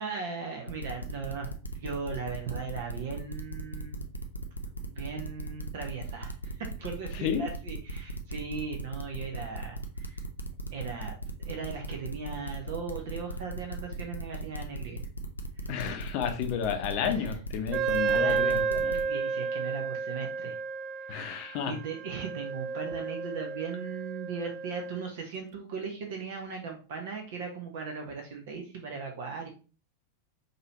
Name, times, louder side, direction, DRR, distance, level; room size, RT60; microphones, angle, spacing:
voice 1, 0.0-4.1 4.7-10.3 10.7-15.0 15.6-15.7 17.0-17.4 17.7-20.6 21.0-21.2 21.7-29.5, right 5 dB, 55° right, 2 dB, 0.8 m, -38 dB
sound 1, 0.7-19.0, equal, 85° left, 0.5 m, -38 dB
voice 2, 7.1-7.5 15.7-18.9 21.1-21.8, left 8 dB, 45° left, 6 dB, 0.7 m, -32 dB
Wind instrument woodwind instrument, 17.7-25.1, right 5 dB, 30° right, 0.3 m, -31 dB
5.2 x 2.8 x 2.9 m, 0.36 s
figure-of-eight pair, 90°, 0 cm